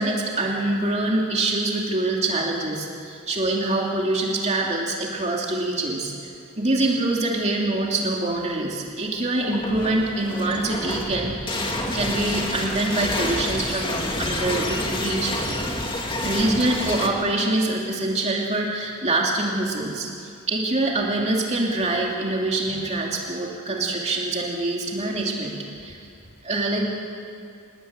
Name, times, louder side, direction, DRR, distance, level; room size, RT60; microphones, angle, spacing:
voice 1, 0.0-15.4 16.2-26.0 26.4-26.9, right 2 dB, 30° right, -1 dB, 2.8 m, -25 dB
sound 1, 9.3-17.1, left 1 dB, 25° left, 2.4 m, -28 dB
28.5 x 21.0 x 8.9 m, 2.5 s
head